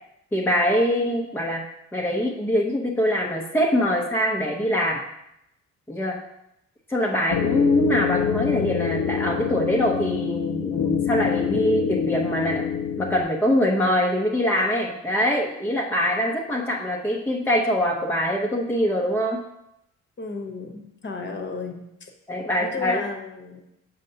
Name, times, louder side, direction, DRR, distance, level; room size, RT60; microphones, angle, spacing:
voice 1, 0.3-5.0 5.9-6.2 6.9-12.6 13.0-19.4 22.3-23.0, equal, 5° left, -1 dB, 0.7 m, -23 dB
sound 1, 7.3-13.2, left 8 dB, 75° left, 0.6 m, -25 dB
voice 2, 20.2-22.1 22.6-23.6, left 4 dB, 40° left, 3 dB, 1.0 m, -34 dB
6.4 x 5.3 x 2.7 m, 0.83 s
cardioid pair, 90°, 30 cm